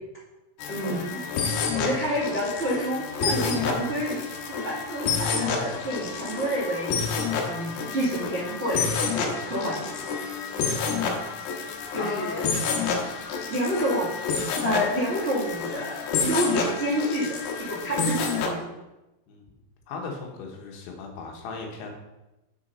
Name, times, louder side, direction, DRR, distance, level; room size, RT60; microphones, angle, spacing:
sound 1, 0.6-18.5, left 5 dB, 90° left, 3.7 m, -29 dB
voice 1, 0.7-1.2 1.7-7.0 7.4-10.0 11.9-12.4 13.5-14.1 14.6-18.7, equal, 50° right, -8 dB, 0.6 m, -29 dB
voice 2, 12.0-12.6 19.3-19.4 19.9-21.9, left 4 dB, 75° left, 1 dB, 3.3 m, -36 dB
7.2 x 7.1 x 5.4 m, 0.99 s
omnidirectional pair, 5.8 m